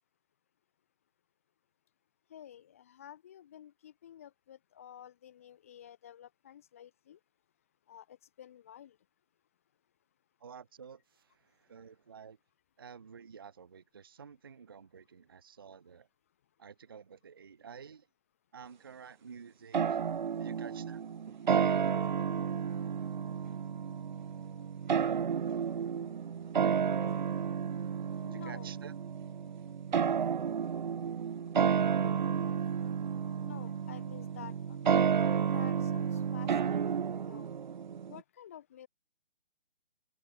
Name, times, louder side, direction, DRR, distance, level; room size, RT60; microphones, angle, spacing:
voice 1, 2.3-7.2 7.9-9.0 28.2-28.8 33.4-34.8 35.5-36.8 37.3-37.5 38.1-38.9, left 10 dB, 15° left, 0.8 m, -51 dB
voice 2, 10.4-11.0 11.7-12.4 12.8-16.1 16.6-18.1 18.5-20.0 20.4-21.0 28.3-28.9, right 7 dB, 25° right, 0.6 m, -50 dB
sound 1, 19.7-38.2, right 7 dB, 50° right, 1.4 m, -31 dB
open air
hypercardioid pair, 170°, 30 cm